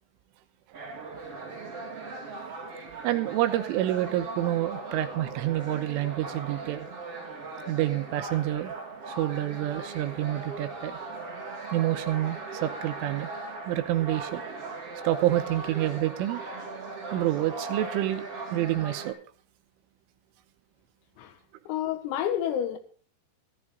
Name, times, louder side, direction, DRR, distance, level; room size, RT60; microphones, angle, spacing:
sound 1, 0.7-19.1, right 3 dB, 35° right, 2.9 m, -39 dB
voice 1, 3.0-6.9 7.7-8.7 9.1-11.0 11.7-13.3 13.7-14.4 15.0-16.4 17.1-19.2, right 14 dB, 80° right, 3.3 m, -28 dB
voice 2, 21.7-22.8, left 10 dB, 85° left, 4.3 m, -29 dB
14.5 x 13.5 x 3.8 m
omnidirectional pair, 5.9 m